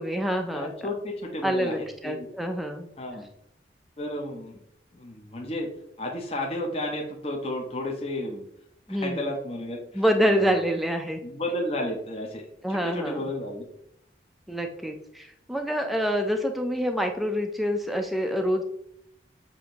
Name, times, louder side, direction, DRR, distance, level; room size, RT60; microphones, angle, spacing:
voice 1, 0.0-0.7 1.4-2.9 8.9-9.3 9.9-11.2 12.6-13.2 14.5-18.6, equal, ahead, 4 dB, 0.3 m, -26 dB
voice 2, 0.5-2.3 3.0-3.3 4.0-4.6 4.9-5.7 6.0-8.5 8.9-10.6 11.2-13.7 14.5-14.6, left 1 dB, 35° left, 0 dB, 0.6 m, -33 dB
7.1 x 2.6 x 2.9 m, 0.73 s
head